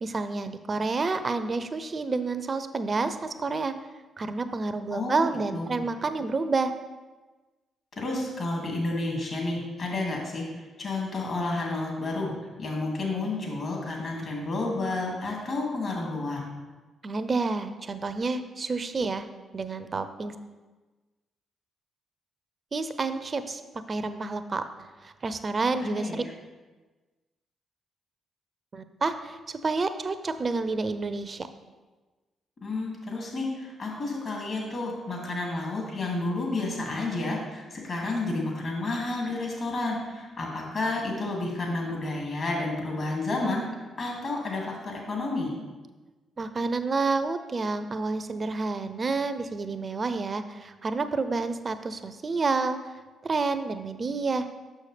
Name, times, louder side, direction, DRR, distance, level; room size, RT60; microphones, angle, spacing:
voice 1, 0.0-3.8 4.2-6.7 17.0-19.2 19.5-20.3 22.7-23.6 23.9-24.6 25.0-26.2 28.7-31.5 46.4-52.9 53.2-54.5, right 3 dB, 45° right, 10 dB, 0.5 m, -29 dB
voice 2, 4.9-5.2 5.5-5.7 8.0-10.5 10.8-12.3 12.6-16.4 25.8-26.3 32.6-43.6 44.0-45.5, left 2 dB, 55° left, -1 dB, 2.3 m, -30 dB
6.4 x 6.2 x 3.3 m, 1.2 s
supercardioid pair, 50°, 0 cm